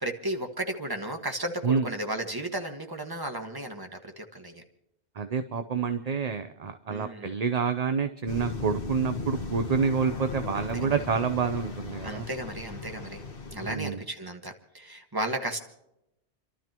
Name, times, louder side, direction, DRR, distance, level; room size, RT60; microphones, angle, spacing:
voice 1, 0.0-4.6 6.9-7.3 10.5-11.0 12.0-13.2 13.5-15.6, right 1 dB, 20° right, 4 dB, 1.6 m, -34 dB
voice 2, 5.2-12.3 13.6-14.0, right 6 dB, 40° right, 8 dB, 0.7 m, -28 dB
sound 1, 8.3-13.8, left 3 dB, 55° left, 1.6 m, -37 dB
30.0 x 12.5 x 3.0 m, 0.85 s
omnidirectional pair, 1.1 m